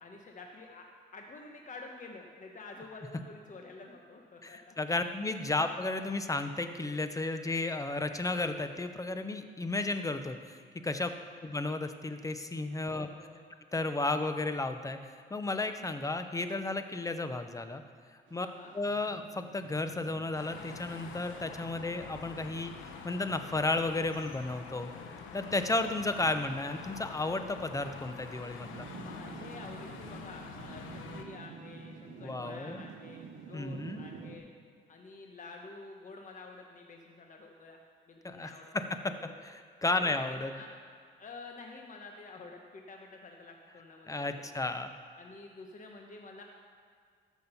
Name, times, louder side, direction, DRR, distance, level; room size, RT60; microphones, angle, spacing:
voice 1, 0.0-0.8 1.1-4.8 11.1-11.4 12.8-13.5 18.4-18.7 29.0-33.2 33.5-34.5 34.9-37.8 38.1-39.4 39.9-40.7 41.2-44.3 45.1-46.4, left 3 dB, 40° left, 2 dB, 1.1 m, -49 dB
voice 2, 4.4-10.6 10.8-11.1 11.4-13.1 13.7-15.0 15.3-17.8 18.3-18.5 18.7-22.7 23.0-24.9 25.3-28.9 32.2-32.8 33.5-34.0 38.2-39.1 39.4-40.5 44.1-44.9, left 2 dB, 15° left, 8 dB, 0.8 m, -33 dB
sound 1, 18.3-34.4, right 5 dB, 75° right, 1.1 m, -50 dB
sound 2, 20.3-31.2, left 6 dB, 85° left, 1.0 m, -46 dB
14.0 x 6.3 x 5.5 m, 2.1 s
cardioid pair, 90°, 20 cm